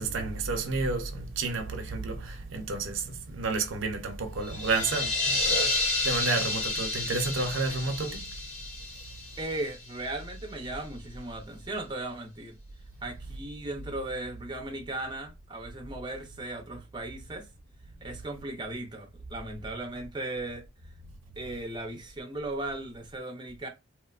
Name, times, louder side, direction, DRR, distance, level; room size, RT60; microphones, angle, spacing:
voice 1, 0.0-5.8 6.0-8.2, right 3 dB, 85° right, 0.6 m, -31 dB
sound 1, 4.4-10.1, left 3 dB, 35° left, 0.8 m, -30 dB
voice 2, 9.4-12.6 13.0-17.5 18.0-20.6 21.4-23.7, right 2 dB, 25° right, 0.5 m, -37 dB
3.0 x 2.1 x 2.3 m
head